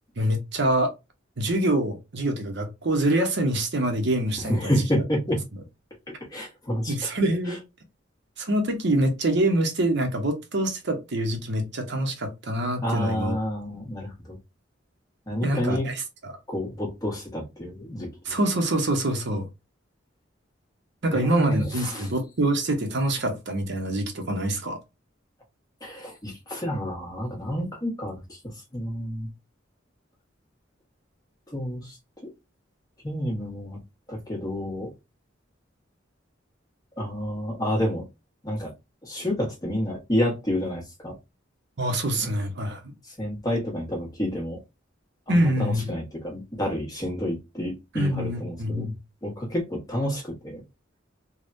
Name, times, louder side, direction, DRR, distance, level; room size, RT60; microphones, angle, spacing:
voice 1, 0.2-0.9 1.4-5.0 6.9-7.6 8.4-13.3 15.4-16.4 18.3-19.5 21.0-24.8 41.8-42.9 45.3-45.9 47.9-48.9, right 1 dB, 65° right, 0.8 m, -25 dB
voice 2, 4.5-5.4 6.3-7.1 7.5-7.6 12.8-14.4 15.3-15.9 16.5-18.1 21.1-22.1 25.8-29.3 31.5-32.0 33.0-33.8 34.1-34.9 37.0-38.0 38.4-38.7 39.0-41.1 42.1-42.3 43.2-44.6 45.3-48.9 49.2-50.6, equal, 20° left, 1.3 m, -29 dB
3.4 x 2.3 x 2.5 m
head